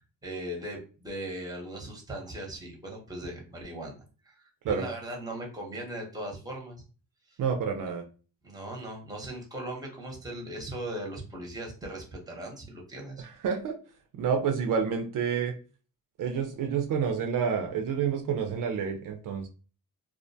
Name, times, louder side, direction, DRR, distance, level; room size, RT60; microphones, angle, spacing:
voice 1, 0.2-6.8 7.3-7.4 8.4-13.2, right 1 dB, 10° right, 0 dB, 0.8 m, -39 dB
voice 2, 7.4-8.0 13.2-13.8 14.2-15.5 16.2-19.5, right 6 dB, 65° right, 4 dB, 0.5 m, -29 dB
2.4 x 2.1 x 2.6 m, 0.37 s
cardioid pair, 115°, 35 cm